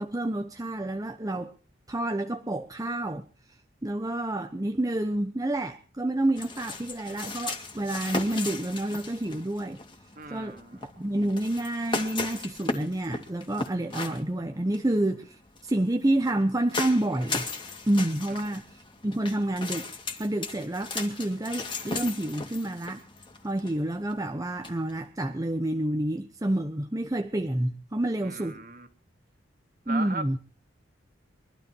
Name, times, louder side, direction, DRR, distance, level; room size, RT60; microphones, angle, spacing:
voice 1, 0.0-1.5 1.9-3.3 3.8-9.8 10.3-17.5 17.9-19.9 20.2-23.1 23.4-28.6 29.9-30.4, right 1 dB, 20° right, 1.0 m, -29 dB
sound 1, 6.4-25.1, left 3 dB, 25° left, 2.6 m, -37 dB
voice 2, 10.2-10.8 28.2-28.9 29.9-30.4, right 4 dB, 50° right, 2.6 m, -38 dB
23.5 x 12.5 x 4.6 m
head